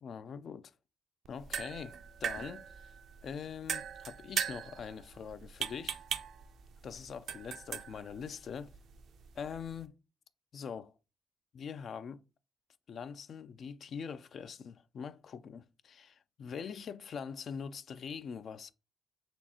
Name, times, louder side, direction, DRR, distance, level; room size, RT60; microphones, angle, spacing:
voice 1, 0.0-0.7 1.3-2.9 3.2-6.0 6.8-8.7 9.4-9.9 10.5-10.9 11.5-12.2 12.9-18.7, left 6 dB, 55° left, 0.3 m, -43 dB
sound 1, 1.2-9.9, right 8 dB, 65° right, 0.4 m, -41 dB
4.2 x 3.2 x 2.9 m
cardioid pair, 90°, 0 cm